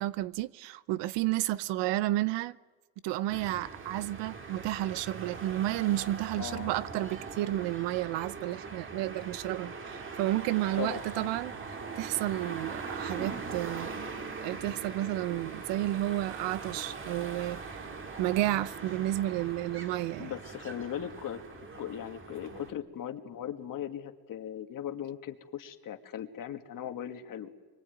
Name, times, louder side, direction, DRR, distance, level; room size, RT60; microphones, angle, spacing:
voice 1, 0.0-2.6 3.0-11.5 12.0-14.0 14.4-17.9 18.2-20.3, right 15 dB, 90° right, 0.9 m, -31 dB
sound 1, 3.3-22.7, right 4 dB, 30° right, 2.0 m, -41 dB
voice 2, 6.4-6.8 10.8-11.4 20.2-21.4 21.8-27.5, left 10 dB, 50° left, 1.9 m, -39 dB
25.0 x 23.5 x 9.3 m
cardioid pair, 145°, 42 cm